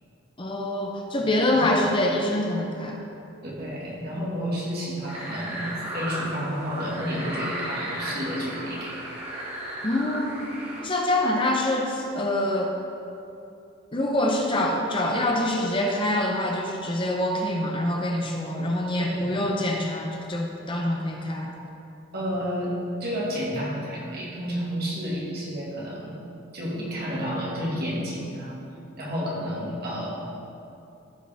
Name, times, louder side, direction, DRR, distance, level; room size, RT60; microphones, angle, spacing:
voice 1, 0.4-3.0 9.8-10.5 10.8-12.7 13.9-21.5, left 1 dB, 25° left, 0 dB, 0.7 m, -25 dB
voice 2, 3.4-9.0 19.0-19.5 22.1-26.1 26.5-28.6 29.0-30.1, equal, 50° right, -5 dB, 2.0 m, -31 dB
sound 1, 5.1-10.8, right 1 dB, 30° right, 1.8 m, -34 dB
14.5 x 4.9 x 3.5 m, 2.7 s
head